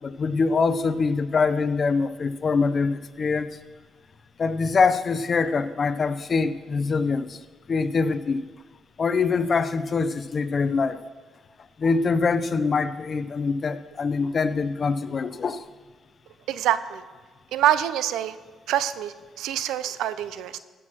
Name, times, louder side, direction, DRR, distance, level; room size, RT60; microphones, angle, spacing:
voice 1, 0.0-3.5 4.4-7.4 7.7-8.4 9.0-11.0 11.8-15.7, left 4 dB, 45° left, 13 dB, 0.6 m, -24 dB
voice 2, 16.5-17.0 17.5-18.4 18.7-20.6, right 11 dB, 90° right, 14 dB, 0.5 m, -25 dB
15.5 x 6.2 x 6.2 m, 1.4 s
cardioid pair, 90°, 0 cm